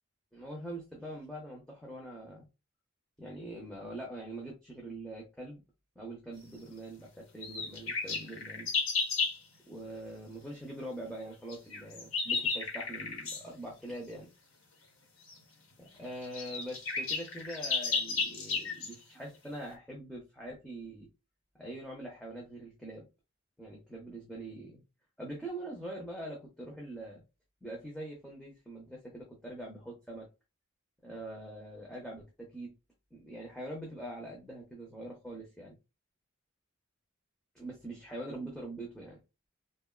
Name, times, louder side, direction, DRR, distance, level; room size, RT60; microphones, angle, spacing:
voice 1, 0.3-2.5 3.2-5.6 6.0-8.7 9.7-14.3 15.8-21.1 21.6-23.0 23.6-24.8 25.2-27.2 27.6-30.3 31.0-32.7 33.1-35.8 37.5-39.2, right 1 dB, 5° left, -3 dB, 0.7 m, -43 dB
sound 1, 7.4-9.4 11.5-13.5 15.3-15.4 15.9-16.0 16.2-18.9, left 4 dB, 80° left, 1.1 m, -33 dB
3.4 x 2.3 x 2.2 m, 0.26 s
head